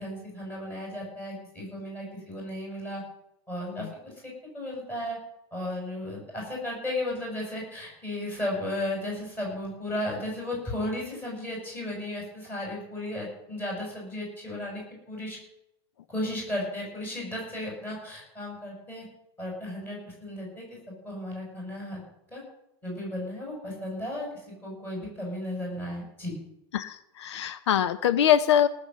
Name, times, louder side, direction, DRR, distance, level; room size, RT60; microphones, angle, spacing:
voice 1, 0.0-3.0 3.5-3.9 4.5-5.2 5.5-14.8 15.1-15.4 16.1-19.0 19.4-20.6 21.0-22.0 22.3-22.4 22.8-24.3 24.6-26.3, left 1 dB, 15° left, -2 dB, 6.8 m, -34 dB
voice 2, 26.7-28.7, left 10 dB, 90° left, 14 dB, 0.8 m, -23 dB
18.0 x 7.2 x 7.6 m, 0.84 s
supercardioid pair, 165°, 14 cm